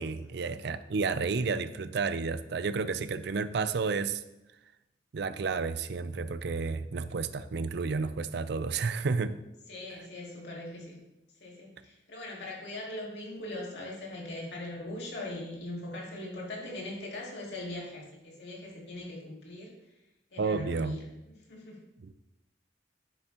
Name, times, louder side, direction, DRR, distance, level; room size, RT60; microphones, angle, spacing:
voice 1, 0.0-4.2 5.1-9.4 20.4-21.0 22.0-22.1, right 4 dB, 60° right, 13 dB, 0.5 m, -31 dB
voice 2, 9.7-11.0 11.4-19.7 20.3-21.8, left 1 dB, 65° left, -3 dB, 2.5 m, -41 dB
9.9 x 7.9 x 2.9 m, 0.94 s
head